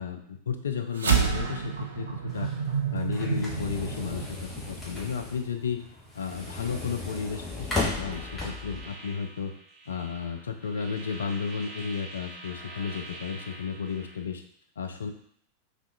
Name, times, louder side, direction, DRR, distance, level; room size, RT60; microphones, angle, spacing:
voice 1, 0.0-2.5 2.9-5.8 6.2-9.5 9.9-14.4 14.8-15.1, left 6 dB, 70° left, 5 dB, 0.3 m, -33 dB
sound 1, 0.9-5.6, right 6 dB, 70° right, 0.4 m, -29 dB
sound 2, 2.3-8.8, left 3 dB, 15° left, 0.9 m, -36 dB
sound 3, 7.5-14.2, right 2 dB, 35° right, 0.7 m, -45 dB
3.5 x 2.5 x 2.2 m, 0.64 s
figure-of-eight pair, 90°, 0 cm